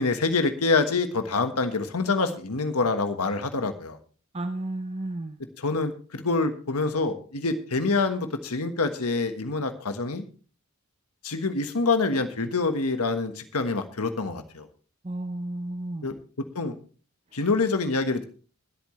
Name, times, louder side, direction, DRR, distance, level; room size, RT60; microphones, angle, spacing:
voice 1, 0.0-4.0 5.6-10.2 11.2-14.7 16.0-16.1 16.5-16.8 17.3-18.3, left 3 dB, 85° left, 8 dB, 1.4 m, -26 dB
voice 2, 4.3-5.4 15.0-16.1, right 1 dB, 30° right, 8 dB, 0.7 m, -32 dB
21.5 x 8.6 x 3.2 m, 0.39 s
head